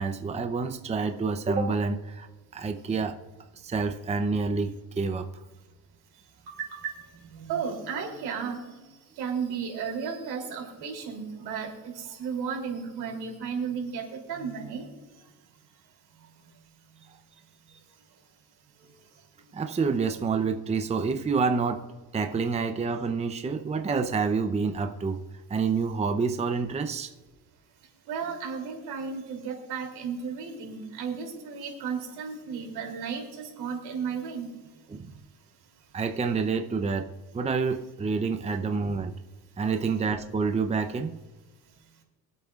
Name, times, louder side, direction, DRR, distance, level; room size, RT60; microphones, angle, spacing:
voice 1, 0.0-2.3 2.5-3.2 3.5-5.3 19.5-21.9 22.1-25.2 25.5-27.1 34.9-35.1 35.9-39.2 39.6-41.2, right 4 dB, 15° right, 6 dB, 0.7 m, -28 dB
voice 2, 6.5-6.9 7.3-8.6 9.2-11.9 12.2-14.9 28.1-34.5, right 6 dB, 80° right, 1 dB, 3.2 m, -34 dB
24.5 x 8.3 x 2.5 m, 1.2 s
cardioid pair, 120°, 38 cm